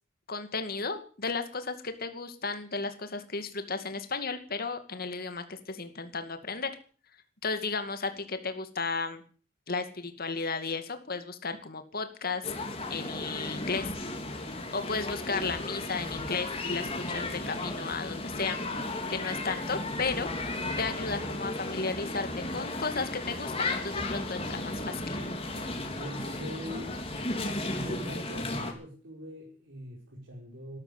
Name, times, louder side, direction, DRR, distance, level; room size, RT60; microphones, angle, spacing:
voice 1, 0.3-6.7 7.4-9.2 9.7-12.5 12.9-13.9 14.5-18.6 19.1-20.3 20.8-25.2, left 4 dB, 50° left, 8 dB, 2.4 m, -34 dB
sound 1, 12.4-28.7, left 2 dB, 30° left, 3.4 m, -35 dB
voice 2, 26.0-27.1 27.6-30.8, equal, 80° right, -2 dB, 5.4 m, -43 dB
13.5 x 12.5 x 8.4 m, 0.42 s
head